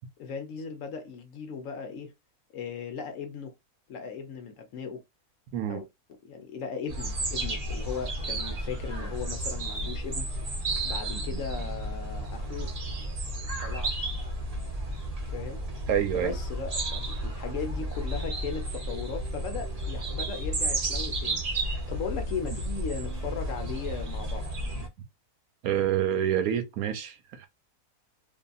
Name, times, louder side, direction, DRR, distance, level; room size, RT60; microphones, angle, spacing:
voice 1, 0.2-2.1 2.5-3.5 3.9-5.0 5.7-10.5 10.8-12.7 13.6-13.9 15.3-15.6 16.1-24.6, left 6 dB, 65° left, 0.9 m, -37 dB
sound 1, 6.9-24.9, right 1 dB, 40° right, 0.6 m, -32 dB
voice 2, 15.9-16.3 25.6-27.5, right 10 dB, 75° right, 1.0 m, -27 dB
2.7 x 2.6 x 2.3 m
omnidirectional pair, 1.6 m